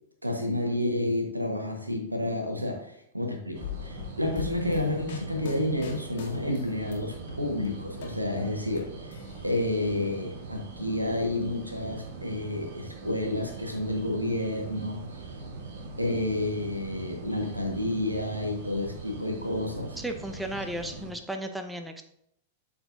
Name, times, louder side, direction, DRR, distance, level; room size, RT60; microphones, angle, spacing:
voice 1, 0.2-9.2 9.4-15.0 16.0-20.0, left 1 dB, 85° right, 2 dB, 1.4 m, -30 dB
sound 1, 3.5-21.1, right 3 dB, 50° right, 1.3 m, -42 dB
sound 2, 3.6-7.0 7.3-8.8 9.1-10.0, left 9 dB, 50° left, 1.5 m, -41 dB
voice 2, 20.0-22.0, right 1 dB, 5° right, 6 dB, 0.6 m, -34 dB
12.0 x 4.3 x 2.7 m, 0.75 s
figure-of-eight pair, 95°, 0 cm